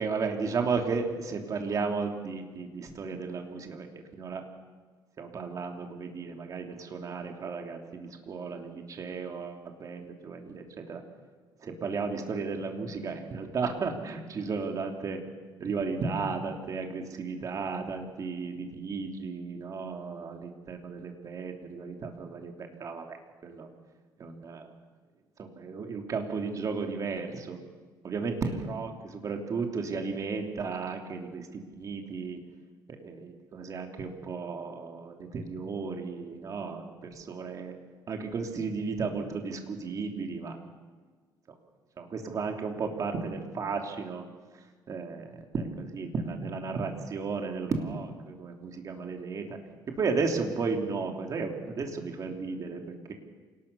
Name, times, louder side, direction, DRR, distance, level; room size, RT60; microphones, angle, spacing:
voice 1, 0.0-3.9 4.1-4.4 5.2-11.0 11.6-15.2 15.6-23.2 23.4-23.7 24.2-24.7 25.4-27.6 28.0-32.4 32.9-36.8 37.1-37.7 38.1-40.6 42.0-44.3 44.5-49.6 50.0-53.1, right 4 dB, 45° right, 3 dB, 3.1 m, -34 dB
27.5 x 19.0 x 7.0 m, 1.4 s
cardioid pair, 125°, 8 cm